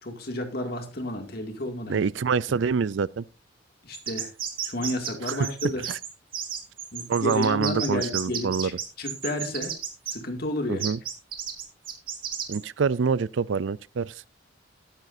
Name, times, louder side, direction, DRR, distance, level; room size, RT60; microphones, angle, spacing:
voice 1, 0.0-2.1 3.8-4.3 4.6-5.8 6.9-9.7 10.1-10.9, left 1 dB, 50° left, 2.4 m, -31 dB
voice 2, 1.9-3.2 5.3-5.5 5.9-6.0 7.1-8.7 10.7-11.0 12.5-14.1, right 5 dB, 75° right, 0.4 m, -26 dB
sound 1, 3.9-10.1 10.8-12.6, right 9 dB, 50° right, 2.4 m, -32 dB
14.0 x 12.0 x 2.7 m
head